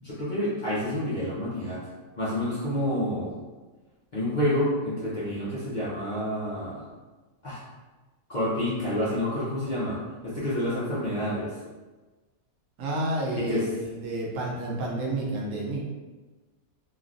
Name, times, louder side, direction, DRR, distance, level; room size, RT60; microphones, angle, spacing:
voice 1, 0.0-1.8 2.2-3.3 4.1-6.8 7.4-7.6 8.3-10.0 10.2-11.5 13.5-13.6, left 1 dB, 45° left, -10 dB, 0.7 m, -28 dB
voice 2, 12.8-15.8, right 1 dB, 70° right, -3 dB, 1.0 m, -30 dB
3.2 x 2.2 x 2.5 m, 1.3 s
omnidirectional pair, 1.5 m